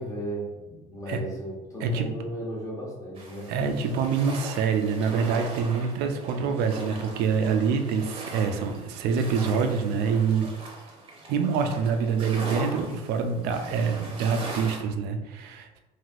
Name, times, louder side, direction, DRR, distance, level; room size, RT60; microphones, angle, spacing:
voice 1, 0.0-3.5, equal, 20° left, -4 dB, 0.9 m, -35 dB
sound 1, 3.2-14.8, right 2 dB, 30° right, 0.7 m, -40 dB
voice 2, 3.5-10.5 11.3-15.8, right 6 dB, 70° right, 6 dB, 0.4 m, -26 dB
3.2 x 2.6 x 2.4 m, 1.1 s
cardioid pair, 135°, 17 cm